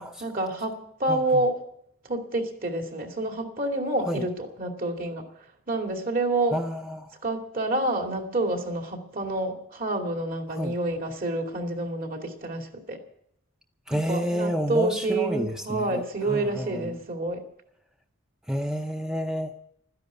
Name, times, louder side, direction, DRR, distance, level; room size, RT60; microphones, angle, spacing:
voice 1, 0.0-1.6 2.0-5.3 5.7-6.6 7.2-13.0 13.9-17.4, right 2 dB, 45° right, 3 dB, 2.5 m, -28 dB
voice 2, 6.5-7.1 10.5-10.8 13.9-17.0 18.5-19.6, equal, 5° right, 4 dB, 0.6 m, -30 dB
13.5 x 10.5 x 9.4 m, 0.72 s
head